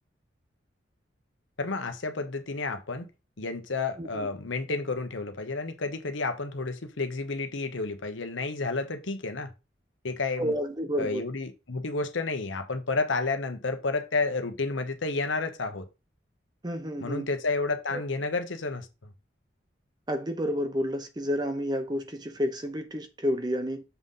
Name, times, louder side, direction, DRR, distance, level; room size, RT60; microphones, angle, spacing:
voice 1, 1.6-3.1 3.4-9.5 10.0-10.6 11.0-15.9 17.0-19.1, left 3 dB, 85° left, 1.1 m, -31 dB
voice 2, 4.0-4.3 10.4-11.2 16.6-17.3 17.9-18.0 20.1-23.8, equal, 20° right, 0.7 m, -30 dB
7.0 x 3.8 x 5.5 m
head